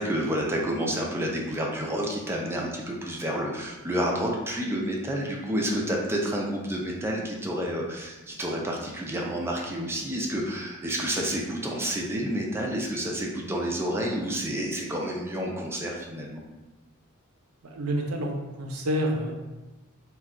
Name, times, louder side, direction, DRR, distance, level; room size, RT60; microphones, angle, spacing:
voice 1, 0.0-16.4, equal, 10° right, -2 dB, 0.4 m, -29 dB
voice 2, 17.6-19.3, equal, 80° right, 1 dB, 0.5 m, -28 dB
2.3 x 2.2 x 3.6 m, 1.1 s
head